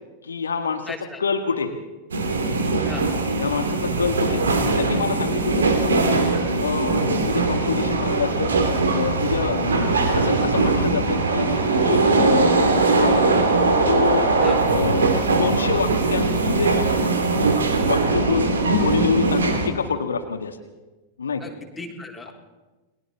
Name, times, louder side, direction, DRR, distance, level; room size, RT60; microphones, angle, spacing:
voice 1, 0.2-0.9 1.2-1.8 3.4-4.4 4.8-6.2 6.6-8.5 8.9-11.5 11.8-13.5 13.9-14.3 14.7-16.8 17.9-20.6 21.2-21.5, left 5 dB, 70° left, 5 dB, 1.8 m, -26 dB
voice 2, 0.9-1.2 2.8-3.1 14.4-14.6 21.4-22.3, left 3 dB, 10° left, 0 dB, 4.0 m, -36 dB
sound 1, 2.1-19.7, right 3 dB, 70° right, 2.9 m, -21 dB
29.5 x 22.0 x 4.1 m, 1.2 s
figure-of-eight pair, 90°, 0 cm